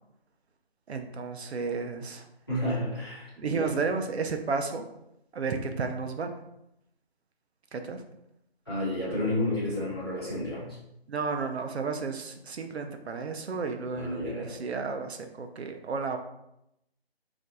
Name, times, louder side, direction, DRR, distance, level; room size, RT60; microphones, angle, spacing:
voice 1, 0.9-2.3 3.4-4.9 5.3-6.3 7.7-8.0 11.1-16.2, right 4 dB, 90° right, 6 dB, 0.5 m, -32 dB
voice 2, 2.5-3.7 8.7-10.8 13.9-14.6, left 1 dB, 25° left, -11 dB, 1.1 m, -31 dB
2.5 x 2.2 x 3.9 m, 0.82 s
figure-of-eight pair, 180°, 31 cm